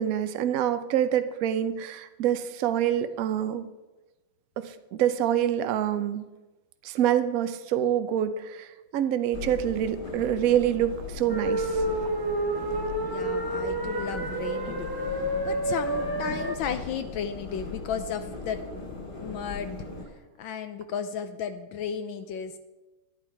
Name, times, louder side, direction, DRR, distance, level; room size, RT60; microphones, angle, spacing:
voice 1, 0.0-3.7 4.6-6.2 6.8-8.7 8.9-11.8, right 10 dB, 75° right, 11 dB, 0.8 m, -26 dB
sound 1, 9.3-20.1, left 4 dB, 50° left, 2.4 m, -39 dB
sound 2, 11.3-16.5, right 1 dB, 15° right, 0.8 m, -29 dB
voice 2, 13.0-14.9 15.4-18.6 19.2-19.8 20.4-22.5, left 7 dB, 75° left, 8 dB, 1.3 m, -34 dB
11.0 x 10.5 x 4.6 m, 1.1 s
omnidirectional pair, 2.3 m